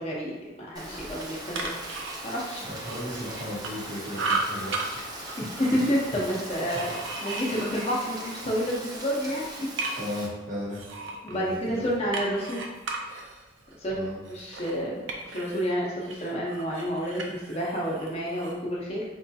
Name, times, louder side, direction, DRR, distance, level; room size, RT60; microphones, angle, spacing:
voice 1, 0.0-1.7 2.2-2.7 5.6-9.7 11.2-12.6 13.8-15.0 15.3-19.0, equal, 30° left, -4 dB, 0.6 m, -29 dB
Rain, 0.8-10.3, right 1 dB, 20° right, 0.4 m, -40 dB
sound 1, 1.3-3.9 4.1-4.9 5.2-8.8 9.2-10.2 10.7-15.7 16.0-18.6, right 3 dB, 75° right, 0.5 m, -36 dB
voice 2, 2.6-5.4 6.7-6.8 9.2-9.4 9.9-10.8 11.3-12.1 13.9-14.2, left 1 dB, 40° right, -6 dB, 1.1 m, -36 dB
4.6 x 2.7 x 2.2 m, 1.2 s
head